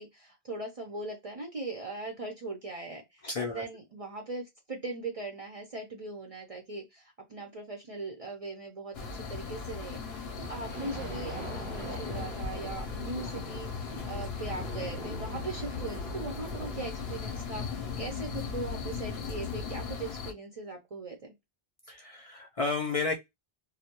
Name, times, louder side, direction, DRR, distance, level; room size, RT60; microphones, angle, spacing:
voice 1, 0.0-21.3, right 2 dB, 45° right, 0.5 m, -40 dB
voice 2, 3.2-3.6 21.9-23.1, left 4 dB, 55° left, 0.4 m, -32 dB
sound 1, 8.9-20.3, left 5 dB, 75° left, 0.8 m, -37 dB
sound 2, 10.4-17.4, right 2 dB, 30° right, 0.9 m, -44 dB
2.1 x 2.1 x 2.8 m
omnidirectional pair, 1.0 m